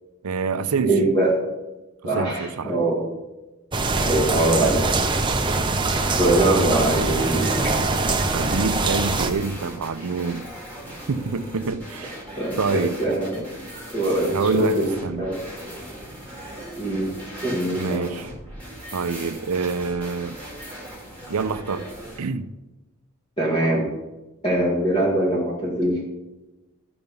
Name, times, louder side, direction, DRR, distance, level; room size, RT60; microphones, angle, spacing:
voice 1, 0.2-1.1 2.1-2.7 6.5-6.9 8.2-10.5 11.1-12.2 12.6-13.0 14.3-15.3 17.7-18.3 18.9-20.4 21.3-21.9 22.2-22.5, right 4 dB, 90° right, 0.6 m, -26 dB
voice 2, 0.8-1.3 2.0-3.0 4.0-4.9 6.0-7.8 12.4-13.5 13.9-14.9 15.2-15.9 16.8-18.1 23.4-23.9 24.4-26.0, right 1 dB, 25° left, 2.1 m, -23 dB
sound 1, 3.7-9.3, right 3 dB, 20° right, 0.7 m, -23 dB
sound 2, 5.7-22.2, equal, 5° left, 3.4 m, -38 dB
13.5 x 6.0 x 5.4 m
head